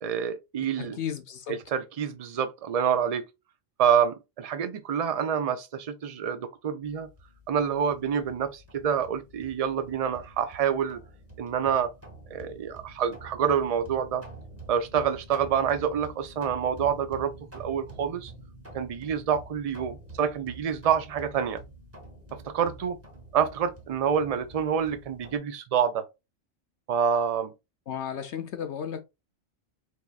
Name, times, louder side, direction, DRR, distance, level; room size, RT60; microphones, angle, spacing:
voice 1, 0.0-1.0 1.5-3.2 3.8-7.1 7.5-11.0 11.4-11.9 12.3-14.2 14.7-18.3 18.7-21.6 22.4-23.0 23.3-26.0 26.9-27.5, right 8 dB, 50° right, 0.4 m, -27 dB
voice 2, 0.8-1.6 27.9-29.0, left 8 dB, 65° left, 0.8 m, -34 dB
sound 1, 6.8-25.4, right 2 dB, 10° right, 1.1 m, -47 dB
4.6 x 3.4 x 2.3 m
omnidirectional pair, 1.3 m